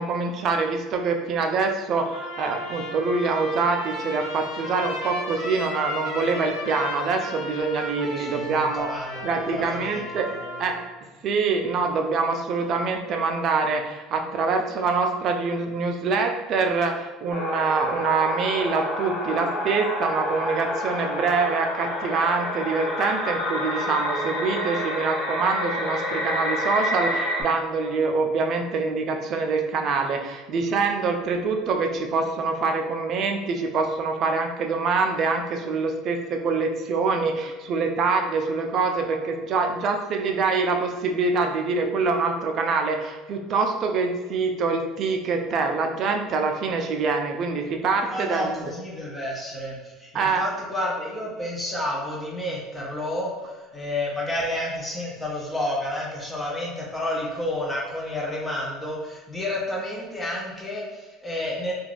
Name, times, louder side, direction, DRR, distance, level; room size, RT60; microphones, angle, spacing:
voice 1, 0.0-10.3 10.6-10.8 11.2-48.6 50.1-50.4, right 4 dB, 50° right, 4 dB, 0.4 m, -25 dB
Trumpet, 2.1-10.9, left 1 dB, 90° left, 0.7 m, -35 dB
voice 2, 8.2-10.5 48.1-61.7, left 1 dB, 10° left, -4 dB, 0.6 m, -30 dB
sound 1, 17.3-27.4, left 1 dB, 50° left, 0.9 m, -29 dB
2.3 x 2.3 x 3.3 m, 1.3 s
supercardioid pair, 110°, 0 cm